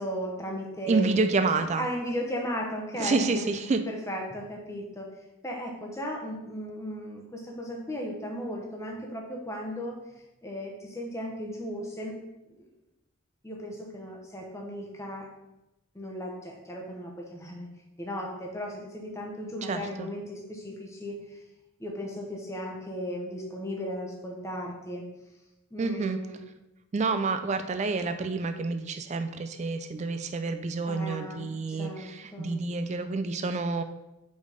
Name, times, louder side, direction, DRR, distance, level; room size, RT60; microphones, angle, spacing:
voice 1, 0.0-1.2 1.8-3.5 3.9-5.1 5.4-10.0 10.4-12.2 12.4-12.7 13.4-15.3 15.9-17.7 18.0-21.4 21.8-25.0 25.7-26.4 30.9-32.6, equal, 15° left, 0 dB, 0.9 m, -36 dB
voice 2, 0.9-1.9 3.0-3.8 19.6-20.1 25.8-26.2 26.9-33.8, right 3 dB, 30° right, 9 dB, 0.3 m, -28 dB
5.1 x 4.1 x 5.0 m, 0.97 s
head